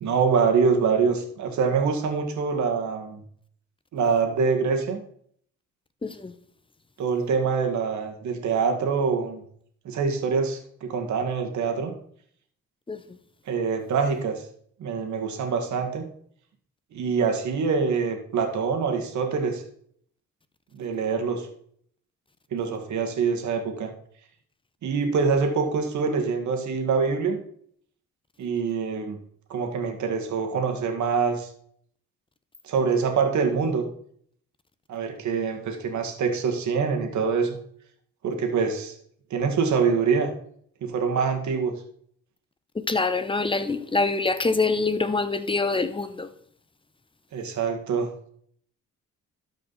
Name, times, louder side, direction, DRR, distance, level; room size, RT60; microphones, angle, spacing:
voice 1, 0.0-3.2 3.9-5.0 7.0-9.4 9.9-11.9 13.5-14.4 14.8-16.1 16.9-19.6 20.7-21.5 22.5-23.9 24.8-27.4 28.4-29.2 29.5-31.5 32.6-33.9 34.9-37.6 38.2-38.9 39.3-40.3 40.8-41.7 47.3-48.1, right 5 dB, 70° right, 1.9 m, -25 dB
voice 2, 6.0-6.3 12.9-13.0 42.8-46.3, left 3 dB, 15° left, 0.8 m, -25 dB
12.5 x 5.2 x 4.1 m
cardioid pair, 90°, 30 cm